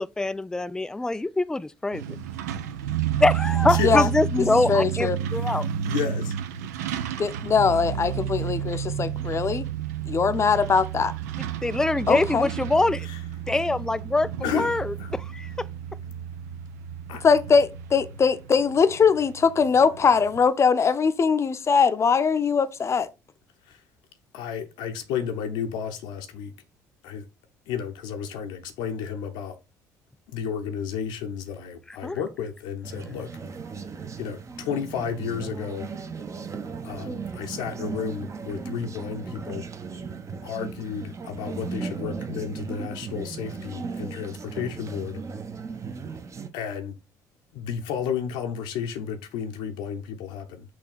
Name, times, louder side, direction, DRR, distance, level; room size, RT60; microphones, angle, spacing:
voice 1, 0.0-2.2 3.2-5.7 11.6-13.1 13.5-15.7 32.0-32.2, left 2 dB, 5° left, 0.3 m, -24 dB
Truck, 1.9-20.4, right 9 dB, 75° right, 0.5 m, -31 dB
voice 2, 3.6-4.0 5.8-6.3 13.0-13.2 14.4-15.1 17.1-17.2 23.7-23.8 24.3-26.5 27.0-27.3 27.7-29.6 30.3-33.3 34.2-35.9 36.8-39.6 40.4-45.2 46.5-47.0 47.5-50.6, left 7 dB, 65° left, 0.8 m, -32 dB
voice 3, 4.5-5.2 7.2-9.7 10.1-11.1 12.1-12.5 17.2-23.1, left 5 dB, 30° left, 0.7 m, -21 dB
sound 1, 32.8-46.5, right 5 dB, 35° right, 0.9 m, -36 dB
6.1 x 3.1 x 5.6 m
figure-of-eight pair, 50°, 9 cm